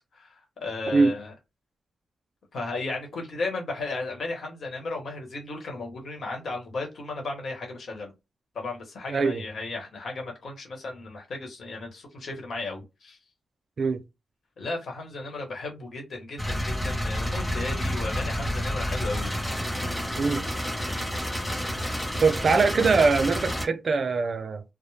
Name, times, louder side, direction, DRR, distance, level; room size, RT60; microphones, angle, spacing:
voice 1, 0.1-1.3 2.5-8.1 8.5-13.2 14.6-19.3 20.8-21.1, left 3 dB, 65° left, 1.1 m, -35 dB
voice 2, 9.1-9.4 13.8-14.0 20.2-20.5 22.2-24.6, right 4 dB, 55° right, 0.4 m, -22 dB
sound 1, 16.4-23.7, equal, 15° left, 0.7 m, -29 dB
2.3 x 2.0 x 3.1 m
cardioid pair, 80°, 0 cm